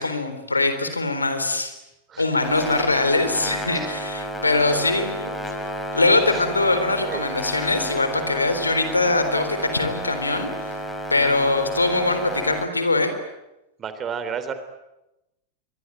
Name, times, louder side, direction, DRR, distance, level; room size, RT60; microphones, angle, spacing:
voice 1, 0.0-1.7 2.2-5.3 5.9-10.5 11.1-13.1, left 2 dB, 80° left, 9 dB, 3.8 m, -22 dB
voice 2, 2.1-2.4 2.9-3.0 3.7-4.0 4.4-5.7 6.3-6.5 7.0-7.2 11.1-11.3 13.8-14.5, right 7 dB, 25° right, 11 dB, 3.5 m, -34 dB
sound 1, 2.4-12.7, equal, 15° left, 4.6 m, -31 dB
27.5 x 23.5 x 8.9 m, 0.93 s
figure-of-eight pair, 90°, 0 cm